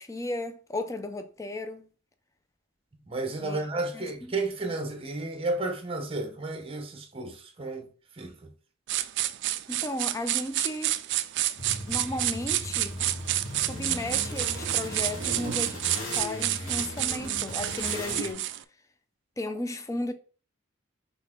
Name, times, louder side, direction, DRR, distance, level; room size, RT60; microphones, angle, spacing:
voice 1, 0.0-1.9 3.4-3.6 3.9-4.0 9.7-11.0 11.9-13.0 13.6-18.5 19.4-20.1, left 1 dB, 15° left, 0.4 m, -35 dB
voice 2, 3.1-7.9 8.2-8.5, right 2 dB, 30° right, 0.7 m, -32 dB
sound 1, 8.9-18.6, right 14 dB, 60° right, 0.3 m, -29 dB
sound 2, 11.6-18.3, left 1 dB, 90° left, 1.8 m, -38 dB
4.0 x 3.6 x 3.7 m
head